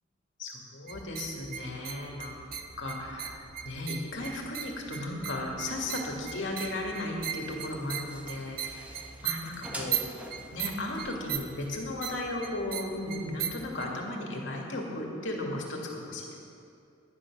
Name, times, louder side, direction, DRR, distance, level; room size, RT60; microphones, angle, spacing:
voice 1, 0.4-2.5 2.8-8.9 9.2-10.2 10.5-16.4, left 1 dB, 85° left, -1 dB, 2.3 m, -35 dB
sound 1, 0.9-13.9, right 9 dB, 50° right, 0.7 m, -39 dB
sound 2, 6.8-14.0, right 1 dB, 10° right, 1.1 m, -48 dB
11.5 x 10.5 x 6.2 m, 2.5 s
head